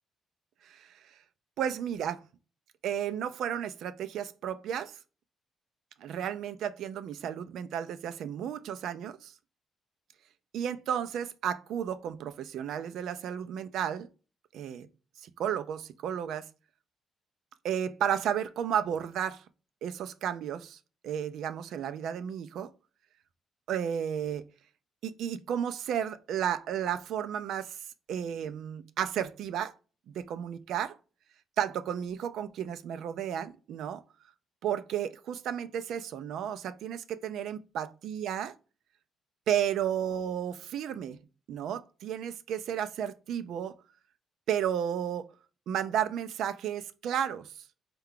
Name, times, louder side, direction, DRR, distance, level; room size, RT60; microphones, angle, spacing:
voice 1, 0.6-0.9 1.6-2.2 2.8-5.0 6.0-9.3 10.5-14.1 14.5-14.9 15.2-16.5 17.6-19.4 19.8-20.8 21.0-22.7 23.7-24.4 25.0-27.8 28.1-29.7 30.1-31.0 31.6-34.0 34.6-38.5 39.5-41.2 41.5-43.7 44.5-45.3 45.7-47.5, right 9 dB, 80° right, 0.3 m, -33 dB
4.6 x 2.2 x 3.6 m
cardioid pair, 140°, 0 cm